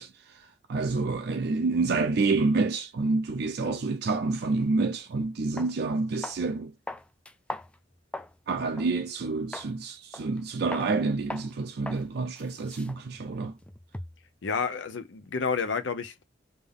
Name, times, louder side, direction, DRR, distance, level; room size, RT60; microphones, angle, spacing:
voice 1, 0.0-6.7 8.5-13.5, right 3 dB, 60° right, 0.4 m, -28 dB
sound 1, 5.0-5.1 5.6-5.7 6.2-6.5 6.9-8.4 8.8-8.9 9.5-9.7 10.1-10.4 10.7-10.9 11.3-11.5 11.9-12.1 12.4-14.3, left 1 dB, 5° left, 0.3 m, -40 dB
voice 2, 14.4-16.2, left 5 dB, 90° left, 0.7 m, -30 dB
3.5 x 2.7 x 3.7 m
head